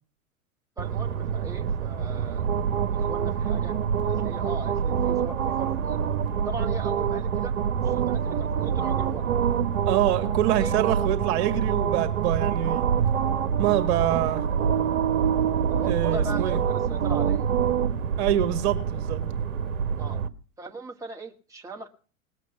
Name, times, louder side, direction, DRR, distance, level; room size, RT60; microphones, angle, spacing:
voice 1, 0.8-2.6 2.9-3.8 4.0-6.0 6.5-9.3 10.5-10.8 15.7-17.6 20.0-20.2 20.6-21.9, right 3 dB, 5° right, 1.8 m, -39 dB
sound 1, 0.8-20.3, right 8 dB, 65° right, 1.2 m, -26 dB
voice 2, 9.9-12.9 13.6-14.5 15.8-16.6 18.2-19.2, right 12 dB, 45° right, 2.0 m, -25 dB
19.5 x 8.3 x 7.0 m
figure-of-eight pair, 95°, 43 cm